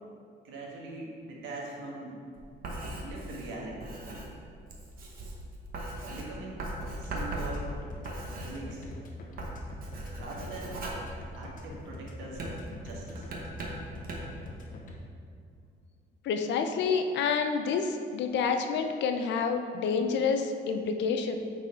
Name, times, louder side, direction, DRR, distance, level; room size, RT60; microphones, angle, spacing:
voice 1, 0.4-2.2 3.0-3.9 6.1-6.6 7.0-7.7 8.4-8.9 10.2-10.8 11.4-12.6 12.8-13.3, right 2 dB, 85° right, -2 dB, 1.5 m, -42 dB
Writing, 2.4-9.0 9.3-11.8 12.3-14.4, right 1 dB, 50° right, 1.0 m, -39 dB
sound 1, 6.9-14.9, left 2 dB, 45° left, 0.9 m, -44 dB
voice 2, 16.2-21.4, left 5 dB, 70° left, 6 dB, 0.6 m, -28 dB
9.1 x 4.2 x 3.7 m, 2.4 s
cardioid pair, 160°, 19 cm